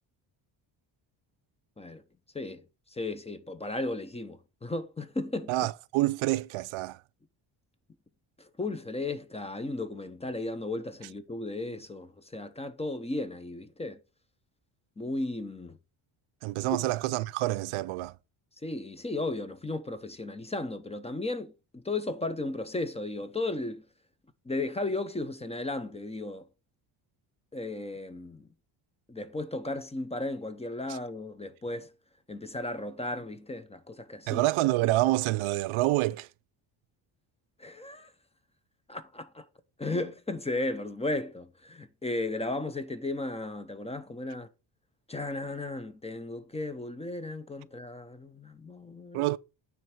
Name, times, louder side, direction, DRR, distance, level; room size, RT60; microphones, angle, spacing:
voice 1, 2.9-5.7 8.4-14.0 15.0-15.8 18.6-23.8 24.5-26.5 27.5-28.5 29.1-31.9 32.3-34.4 37.6-38.1 38.9-39.4 39.8-44.5 45.1-49.3, left 2 dB, 15° left, 0.6 m, -35 dB
voice 2, 5.5-7.0 16.4-18.1 30.9-31.0 34.3-36.3 49.1-49.4, right 18 dB, 85° right, 0.5 m, -27 dB
9.3 x 3.3 x 5.7 m
cardioid pair, 125°, 48 cm